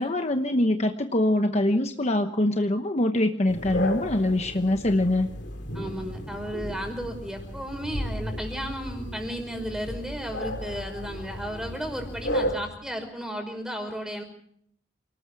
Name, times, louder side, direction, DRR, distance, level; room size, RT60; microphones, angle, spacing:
voice 1, 0.0-5.3, left 1 dB, 40° left, 6 dB, 1.1 m, -24 dB
sound 1, 3.5-12.6, equal, 70° left, 3.2 m, -34 dB
voice 2, 5.7-14.2, equal, 5° right, 5 dB, 5.5 m, -34 dB
28.5 x 19.5 x 4.8 m, 0.65 s
head